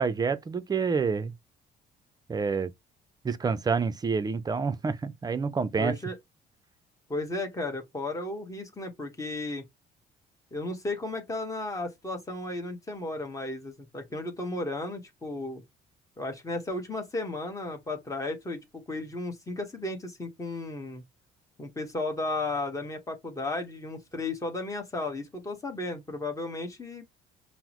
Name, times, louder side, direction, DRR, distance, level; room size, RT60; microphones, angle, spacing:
voice 1, 0.0-1.3 2.3-2.7 3.2-5.9, right 5 dB, 25° right, 0.5 m, -28 dB
voice 2, 5.8-6.1 7.1-9.6 10.5-15.6 16.2-21.0 21.6-27.0, left 2 dB, 20° left, 1.2 m, -34 dB
5.7 x 2.1 x 3.0 m
cardioid pair, 110°, 17 cm